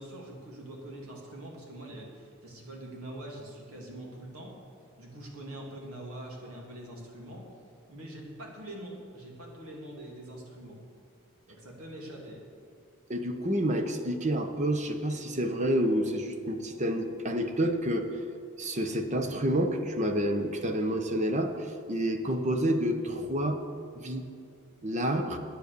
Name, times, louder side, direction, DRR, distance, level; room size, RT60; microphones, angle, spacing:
voice 1, 0.0-4.6 5.0-7.4 7.9-10.8 11.5-12.4 22.3-22.4, right 1 dB, 75° right, -1 dB, 2.7 m, -44 dB
voice 2, 13.1-18.1 18.6-21.5 21.9-23.6 24.0-24.3 24.8-25.4, right 1 dB, 30° right, 6 dB, 0.9 m, -29 dB
9.8 x 9.5 x 6.8 m, 2.4 s
head